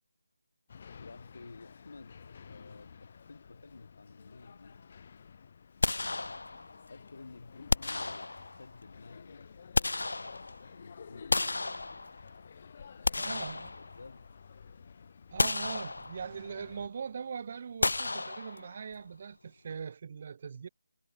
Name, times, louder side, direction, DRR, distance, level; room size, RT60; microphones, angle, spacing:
sound 1, 0.7-16.9, left 6 dB, 30° left, 5.4 m, -53 dB
voice 1, 1.0-4.9 5.9-6.6 6.9-9.6 9.9-11.5 12.9-14.4, left 3 dB, 60° left, 7.8 m, -53 dB
sound 2, 5.8-6.9 7.7-8.7 9.4-10.7 11.3-12.4 12.8-14.3 14.7-14.8 15.4-16.4 17.8-18.9, left 2 dB, 90° left, 0.4 m, -32 dB
voice 2, 13.1-13.7 15.3-20.7, right 6 dB, 30° right, 0.4 m, -41 dB
figure-of-eight pair, 175°, 0 cm